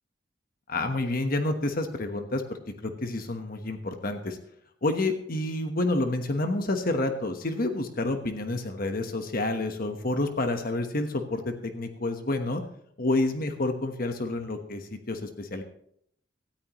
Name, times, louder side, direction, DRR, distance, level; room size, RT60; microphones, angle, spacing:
voice 1, 0.7-4.4 4.8-12.6 13.0-15.6, left 2 dB, 50° left, 6 dB, 1.2 m, -29 dB
18.0 x 13.5 x 3.1 m, 0.67 s
head